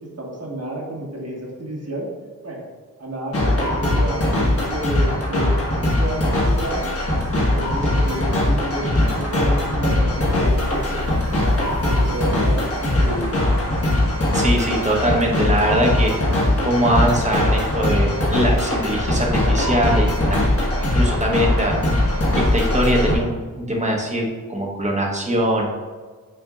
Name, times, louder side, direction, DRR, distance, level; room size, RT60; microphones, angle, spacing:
voice 1, 0.2-2.1 2.4-2.7 3.0-7.0 7.5-11.3 12.0-13.4, right 1 dB, 45° right, -3 dB, 1.5 m, -30 dB
sound 1, 3.3-23.1, left 1 dB, 40° left, 1.4 m, -20 dB
voice 2, 14.3-16.1 16.6-20.4 20.8-21.8 22.4-25.7, equal, 20° right, -2 dB, 1.0 m, -22 dB
9.3 x 4.3 x 2.4 m, 1.5 s
wide cardioid pair, 115°, 36 cm